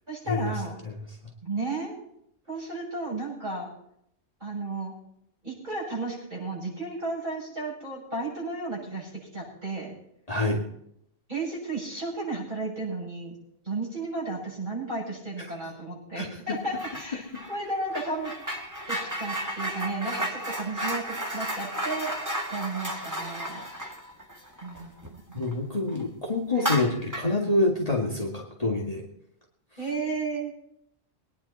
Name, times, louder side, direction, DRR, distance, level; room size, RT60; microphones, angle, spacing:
voice 1, 0.1-0.8 1.4-2.0 2.5-3.7 4.4-5.0 5.4-9.9 11.3-13.4 13.6-18.3 18.9-22.1 22.5-23.6 24.6-25.5 29.8-30.5, right 3 dB, 35° right, -5 dB, 7.8 m, -33 dB
voice 2, 10.3-10.6 16.2-16.3 25.3-29.0, left 2 dB, 30° left, -2 dB, 2.3 m, -26 dB
sound 1, 16.8-17.1 17.3-25.5 25.9-26.0 26.5-27.4, right 1 dB, 15° right, 2.0 m, -33 dB
23.0 x 10.0 x 4.3 m, 0.74 s
omnidirectional pair, 1.3 m